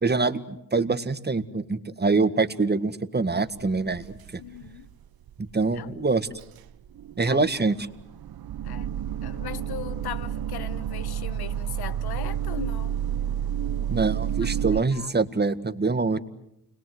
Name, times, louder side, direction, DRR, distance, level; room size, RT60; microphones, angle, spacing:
voice 1, 0.0-4.4 5.4-6.3 7.2-7.7 13.9-16.2, right 3 dB, 25° right, 1.8 m, -25 dB
sound 1, 3.6-4.3 4.6-4.9 5.3-5.4 5.6-5.7 6.4-14.8, right 10 dB, 70° right, 1.1 m, -30 dB
voice 2, 4.4-4.9 5.7-6.1 7.2-7.5 8.6-8.9 9.2-13.0 14.4-15.1, left 11 dB, 80° left, 1.4 m, -39 dB
30.0 x 22.0 x 7.9 m
cardioid pair, 65°, 37 cm